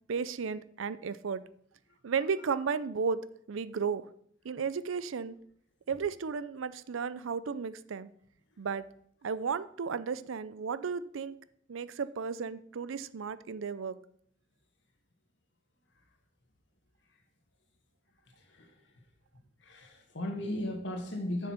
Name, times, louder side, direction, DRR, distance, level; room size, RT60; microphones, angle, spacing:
voice 1, 0.1-1.4 2.0-3.2 3.5-4.0 4.4-5.4 5.9-8.1 8.6-8.8 9.2-11.4 11.7-14.0, right 5 dB, 80° right, 15 dB, 0.5 m, -34 dB
voice 2, 19.6-21.5, left 1 dB, 65° left, 3 dB, 1.8 m, -36 dB
7.1 x 6.7 x 5.8 m, 0.67 s
head